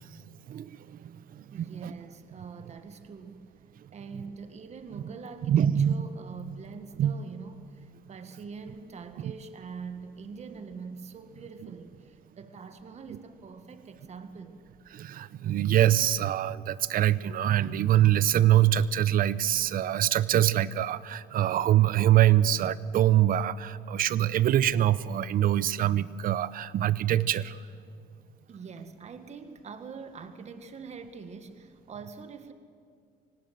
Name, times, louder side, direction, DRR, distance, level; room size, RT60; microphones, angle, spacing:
voice 1, 0.5-1.9 5.4-6.1 7.0-7.1 9.2-9.3 14.9-27.6, right 12 dB, 55° right, 17 dB, 0.8 m, -24 dB
voice 2, 1.5-3.5 3.9-14.6 28.5-32.5, right 5 dB, 40° right, 9 dB, 1.7 m, -44 dB
25.0 x 18.0 x 7.9 m, 2.2 s
cardioid pair, 110°, 17 cm